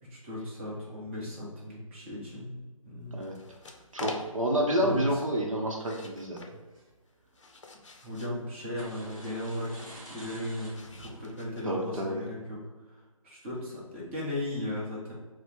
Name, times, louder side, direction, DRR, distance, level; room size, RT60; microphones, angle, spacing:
voice 1, 0.0-3.3 4.8-5.2 8.0-12.6 12.9-13.0 13.2-15.1, left 1 dB, 20° right, -5 dB, 0.9 m, -36 dB
sound 1, 3.0-4.5 5.7-6.0 6.4-6.9 7.2-7.7 8.7-11.3, right 1 dB, ahead, 0.5 m, -48 dB
sound 2, 3.2-4.6 5.7-6.6 7.1-8.4 9.1-10.0 10.7-11.9, left 3 dB, 55° left, 0.5 m, -46 dB
voice 2, 3.9-6.4 11.6-12.2, equal, 65° right, 0 dB, 0.7 m, -29 dB
4.9 x 2.1 x 3.4 m, 1.3 s
figure-of-eight pair, 150°, 18 cm